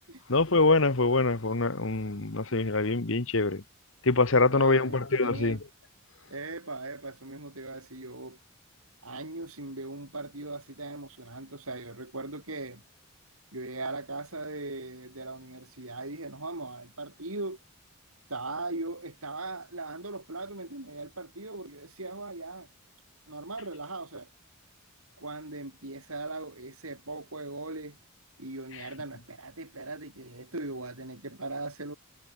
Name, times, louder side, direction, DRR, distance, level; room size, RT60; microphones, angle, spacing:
voice 1, 0.3-3.6 4.0-5.6, left 3 dB, 60° left, 1.3 m, -24 dB
voice 2, 4.4-5.6 6.3-8.4 9.0-12.8 13.5-17.6 18.3-22.7 23.3-24.3 25.2-28.0 28.4-31.9, right 2 dB, 75° right, 6.6 m, -39 dB
head